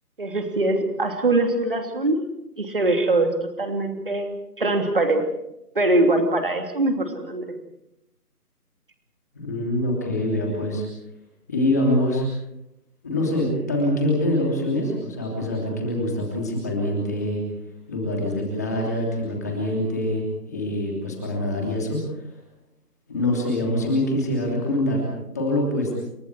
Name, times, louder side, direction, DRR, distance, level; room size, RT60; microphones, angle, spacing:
voice 1, 0.2-2.2 2.6-5.2 5.7-7.4, right 2 dB, 35° right, 5 dB, 3.1 m, -22 dB
voice 2, 9.3-10.9 11.5-12.3 13.0-17.4 17.9-22.3 23.1-25.0 25.3-25.9, left 1 dB, 10° left, -2 dB, 3.0 m, -24 dB
29.5 x 27.5 x 4.7 m, 0.83 s
figure-of-eight pair, 175°, 46 cm